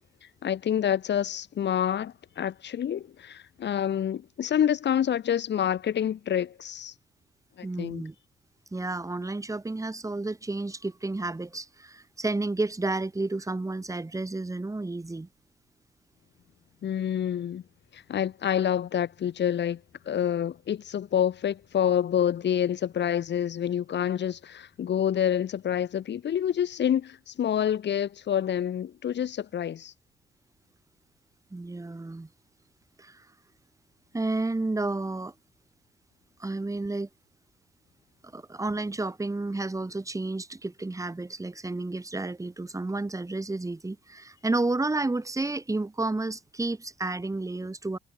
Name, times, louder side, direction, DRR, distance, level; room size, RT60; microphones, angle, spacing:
voice 1, 0.4-6.9 7.6-8.0 16.8-17.6 17.9-29.9, left 9 dB, 60° left, 4.9 m, -27 dB
voice 2, 7.6-8.1 8.7-15.3 31.5-32.3 33.0-33.3 34.1-35.3 36.4-37.1 38.3-48.0, right 2 dB, 15° right, 3.7 m, -31 dB
cardioid pair, 90°, 20 cm